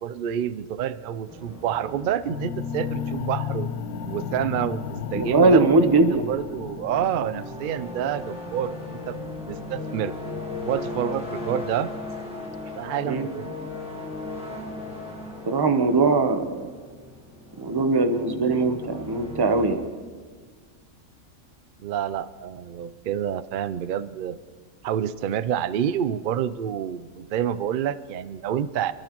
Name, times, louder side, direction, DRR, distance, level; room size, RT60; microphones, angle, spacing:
voice 1, 0.0-3.7 4.1-5.8 6.1-10.1 10.7-11.9 12.8-13.5 21.8-24.4 24.8-28.9, right 10 dB, 75° right, 15 dB, 0.4 m, -28 dB
sound 1, 1.3-19.8, left 2 dB, 5° right, 1.3 m, -38 dB
sound 2, 2.2-12.2, left 7 dB, 85° left, 1.4 m, -35 dB
voice 2, 5.1-6.3 13.0-13.3 15.5-16.7 17.6-19.9, right 3 dB, 20° right, 8 dB, 0.7 m, -21 dB
27.5 x 12.5 x 3.0 m, 1.5 s
omnidirectional pair, 1.5 m